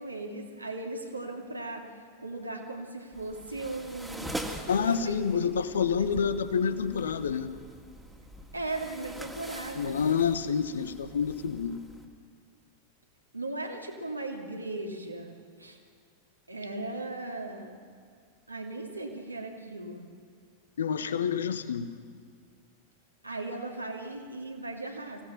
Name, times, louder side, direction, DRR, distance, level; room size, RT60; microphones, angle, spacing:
voice 1, 0.0-1.9 2.2-4.4 4.7-5.4 6.0-6.1 8.5-10.0 13.3-15.8 16.5-17.7 18.5-20.0 23.2-25.2, right 2 dB, 85° right, 1 dB, 2.6 m, -37 dB
sound 1, 3.1-12.1, right 1 dB, 5° right, 2.0 m, -43 dB
voice 2, 4.7-7.5 9.8-11.8 20.8-21.9, left 6 dB, 65° left, 13 dB, 1.0 m, -28 dB
24.5 x 16.5 x 7.2 m, 2.2 s
figure-of-eight pair, 90°, 0 cm